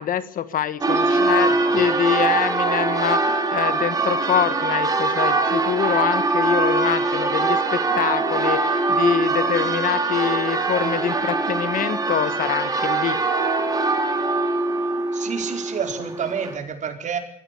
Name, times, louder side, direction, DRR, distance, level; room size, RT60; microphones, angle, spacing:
voice 1, 0.0-13.2, left 9 dB, 55° left, 14 dB, 1.5 m, -25 dB
Church bell, 0.8-16.5, right 3 dB, 20° right, 3.5 m, -22 dB
voice 2, 0.9-1.8 15.1-17.2, right 7 dB, 45° right, 5 dB, 4.6 m, -29 dB
22.5 x 15.5 x 8.4 m, 0.68 s
cardioid pair, 110°, 17 cm